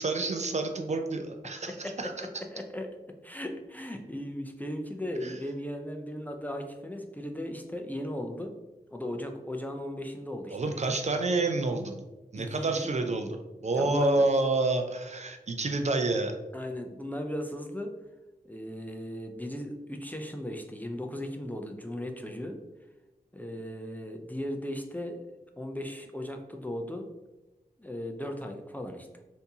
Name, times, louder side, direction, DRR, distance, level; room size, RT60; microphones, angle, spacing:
voice 1, 0.0-2.3 5.2-5.3 10.5-12.0 12.3-13.4 13.6-16.3, right 2 dB, 50° right, 5 dB, 0.4 m, -28 dB
voice 2, 1.8-2.9 3.2-8.5 8.9-10.9 12.4-12.7 13.7-14.2 16.5-17.9 18.4-22.6 23.3-27.1 27.8-29.1, left 1 dB, 10° left, 3 dB, 0.4 m, -37 dB
3.4 x 2.7 x 2.7 m, 1.1 s
cardioid pair, 50°, 16 cm